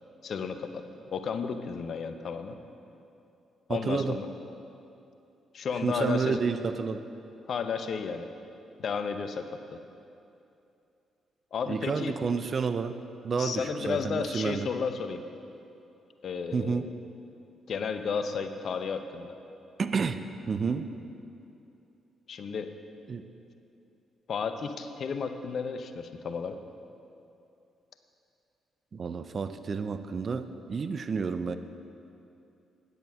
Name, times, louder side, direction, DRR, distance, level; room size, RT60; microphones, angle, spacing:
voice 1, 0.2-0.8 1.1-2.6 3.7-4.3 5.5-6.4 7.5-8.3 8.8-9.5 11.5-12.1 13.4-15.2 16.2-16.9 17.7-19.4 22.3-22.7 24.3-26.6, left 6 dB, 60° left, 8 dB, 0.7 m, -33 dB
voice 2, 3.7-4.2 5.8-7.0 11.7-13.0 13.2-14.7 16.5-16.9 19.8-20.2 20.5-20.9 23.1-23.3 28.9-31.6, right 5 dB, 50° right, 11 dB, 0.5 m, -30 dB
9.1 x 8.0 x 6.3 m, 2.7 s
hypercardioid pair, 45°, 0 cm